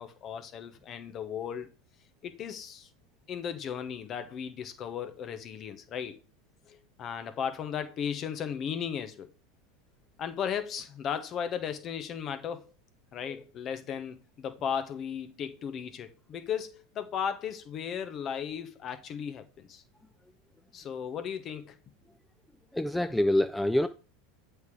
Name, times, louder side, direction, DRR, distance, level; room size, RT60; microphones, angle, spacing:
voice 1, 0.0-1.7 2.2-2.9 3.3-6.2 6.7-9.3 10.2-12.6 13.1-19.8 20.7-21.8, left 8 dB, 40° left, 0.9 m, -36 dB
voice 2, 22.7-23.9, left 1 dB, 5° left, 0.3 m, -25 dB
8.2 x 3.3 x 4.6 m
hypercardioid pair, 85°, 0 cm